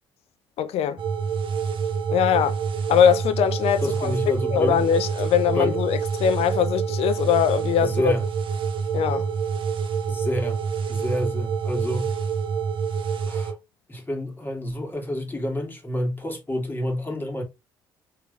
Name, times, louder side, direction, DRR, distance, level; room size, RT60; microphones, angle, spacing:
voice 1, 0.6-1.0 2.1-2.6 2.9-4.1 4.5-8.1 8.9-9.3, left 8 dB, 60° left, 0.5 m, -21 dB
sound 1, 1.0-13.5, right 6 dB, 50° right, 1.1 m, -27 dB
voice 2, 3.8-4.8 5.5-5.8 7.8-8.3 10.1-10.6 10.9-12.1 13.2-13.6 13.9-17.4, equal, 15° left, 2.1 m, -28 dB
4.7 x 3.2 x 2.3 m
hypercardioid pair, 50°, 11 cm